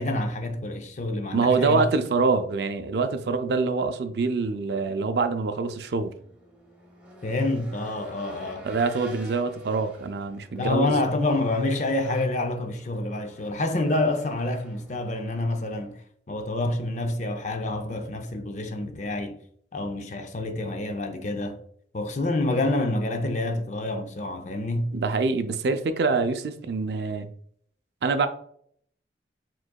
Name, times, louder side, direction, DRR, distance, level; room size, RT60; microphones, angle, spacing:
voice 1, 0.0-1.9 7.2-8.7 10.6-16.0 16.3-19.4 19.7-21.6 21.9-24.9, left 2 dB, 40° left, 0.5 m, -27 dB
voice 2, 1.3-6.1 8.6-10.9 24.9-27.3 28.0-28.3, right 4 dB, 65° right, 0.4 m, -25 dB
Race car auto racing / Engine, 5.9-15.9, right 1 dB, 10° right, 0.8 m, -48 dB
5.0 x 3.8 x 2.2 m
head